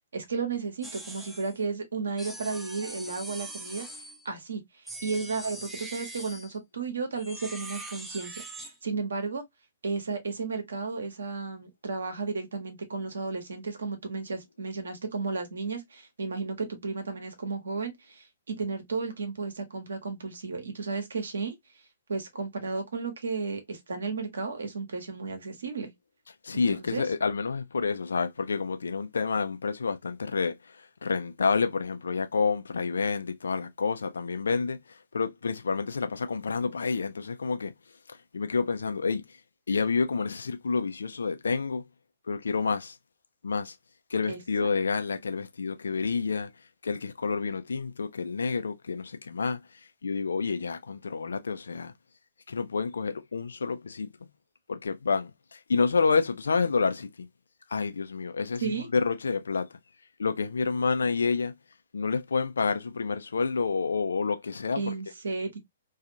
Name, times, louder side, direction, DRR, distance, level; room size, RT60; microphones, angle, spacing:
voice 1, 0.1-3.9 4.2-9.4 9.8-21.5 22.1-25.9 26.5-27.0 44.3-44.7 58.6-58.9 64.7-65.6, right 4 dB, 65° right, 0.9 m, -33 dB
sound 1, 0.8-1.6 2.2-4.3 4.9-6.6 7.2-8.8, right 2 dB, 5° right, 0.5 m, -42 dB
voice 2, 26.4-37.7 38.1-39.2 39.7-41.8 42.3-43.0 43.4-43.7 44.1-46.5 46.8-49.6 50.0-51.9 52.5-54.1 54.7-57.3 57.7-59.7 60.2-61.5 61.9-64.9, left 5 dB, 70° left, 0.5 m, -29 dB
2.5 x 2.3 x 2.7 m
figure-of-eight pair, 115°, 0 cm